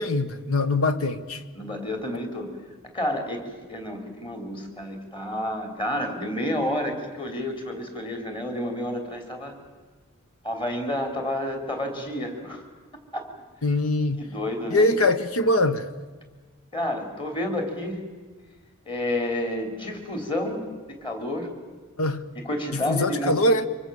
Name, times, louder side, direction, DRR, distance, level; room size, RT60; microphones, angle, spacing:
voice 1, 0.0-1.4 13.6-14.2 14.7-15.9 22.0-22.2 22.7-23.7, left 2 dB, 85° left, 1.3 m, -23 dB
voice 2, 1.5-2.6 2.8-9.5 10.4-12.7 13.1-13.3 14.2-15.0 16.7-18.0 18.9-21.5 22.4-23.4, left 1 dB, 25° left, 3.7 m, -30 dB
25.5 x 24.0 x 7.2 m
head